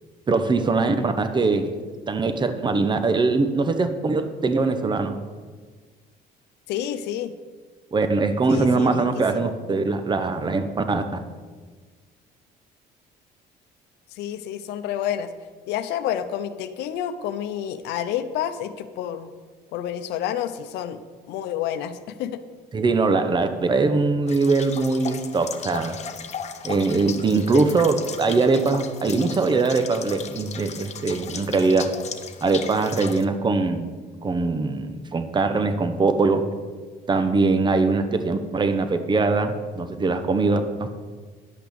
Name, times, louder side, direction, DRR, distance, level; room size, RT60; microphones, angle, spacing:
voice 1, 0.3-1.7 2.1-5.2 7.9-11.0 22.7-26.0 26.6-31.9 32.4-33.9 34.2-36.5 37.1-40.6, right 3 dB, 25° right, 9 dB, 1.0 m, -22 dB
voice 2, 6.7-7.3 8.5-9.6 14.1-15.3 15.7-19.3 19.7-21.0 21.3-22.4 27.5-27.6, left 10 dB, 90° left, 11 dB, 0.8 m, -29 dB
sound 1, 24.3-33.3, left 7 dB, 40° left, 0.8 m, -36 dB
10.5 x 6.0 x 7.0 m, 1.4 s
cardioid pair, 110°, 17 cm